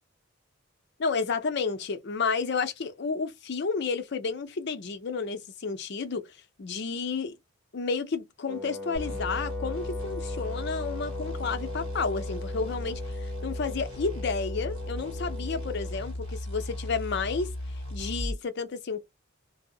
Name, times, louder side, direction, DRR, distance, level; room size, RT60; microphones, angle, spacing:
voice 1, 1.0-6.3 6.6-7.4 7.7-17.5 17.9-19.1, left 4 dB, 55° left, 0.5 m, -31 dB
Wind instrument woodwind instrument, 8.5-16.1, left 2 dB, 5° left, 0.7 m, -40 dB
sound 1, 8.9-18.4, left 1 dB, 85° right, 1.3 m, -36 dB
2.6 x 2.0 x 2.6 m
head